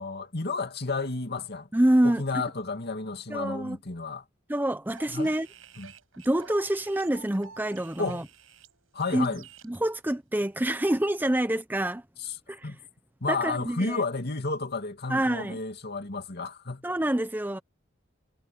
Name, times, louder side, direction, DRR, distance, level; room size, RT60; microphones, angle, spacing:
voice 1, 0.0-1.7 2.0-4.2 5.1-5.3 5.8-5.9 8.0-8.3 8.9-9.4 12.2-12.3 12.6-12.8 13.2-16.8, left 3 dB, 55° left, 2.5 m, -32 dB
voice 2, 1.7-2.2 3.3-3.8 4.5-5.5 6.2-8.2 9.1-9.3 9.6-12.0 12.5-12.7 13.3-14.0 15.1-15.6 16.8-17.6, right 1 dB, 10° right, 0.7 m, -26 dB
sound 1, 4.9-9.8, right 6 dB, 90° right, 7.3 m, -50 dB
head